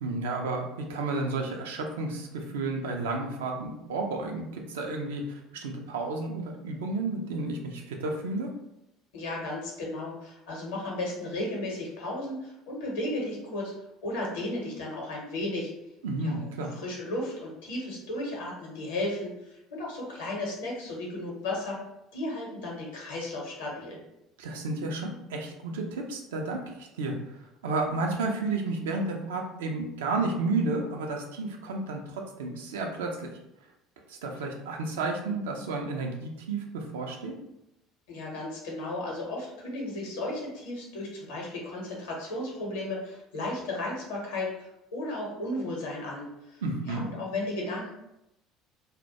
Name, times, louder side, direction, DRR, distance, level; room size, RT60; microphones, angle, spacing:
voice 1, 0.0-8.5 16.0-16.7 24.4-27.1 27.6-33.3 34.1-37.3 46.6-47.1, right 3 dB, 70° right, 2 dB, 0.4 m, -32 dB
voice 2, 9.1-13.7 14.0-15.7 16.2-21.8 22.1-24.0 38.1-46.6 46.9-47.9, left 1 dB, 65° left, -2 dB, 0.7 m, -34 dB
2.2 x 2.1 x 2.7 m, 0.86 s
figure-of-eight pair, 60°, 0 cm